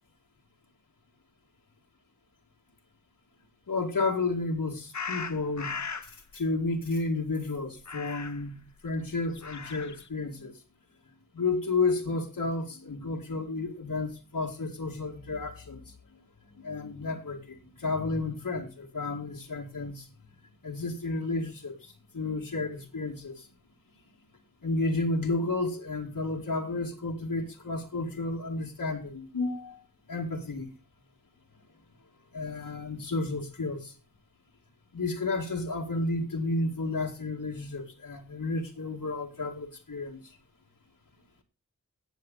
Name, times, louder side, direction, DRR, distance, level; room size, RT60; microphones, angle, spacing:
voice 1, 3.7-10.6 11.3-15.9 16.6-20.1 20.6-23.5 24.6-29.8 30.1-30.7 32.3-33.9 34.9-40.2, left 3 dB, 90° left, 2.1 m, -32 dB
sound 1, 4.9-6.1 7.8-8.5 9.3-10.1, left 5 dB, 60° left, 0.9 m, -37 dB
17.5 x 7.0 x 3.9 m
wide cardioid pair, 50°, 33 cm